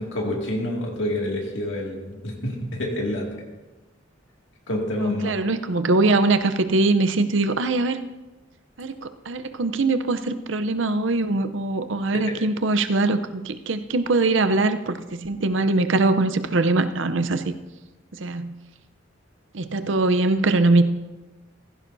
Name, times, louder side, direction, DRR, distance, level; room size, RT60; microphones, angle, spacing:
voice 1, 0.0-3.3 4.7-5.4 12.1-12.2, left 1 dB, 70° left, -1 dB, 2.2 m, -27 dB
voice 2, 5.0-8.0 8.8-17.5 18.2-18.5 19.5-20.8, right 2 dB, 70° right, 10 dB, 0.7 m, -22 dB
15.5 x 15.5 x 2.7 m, 1.1 s
head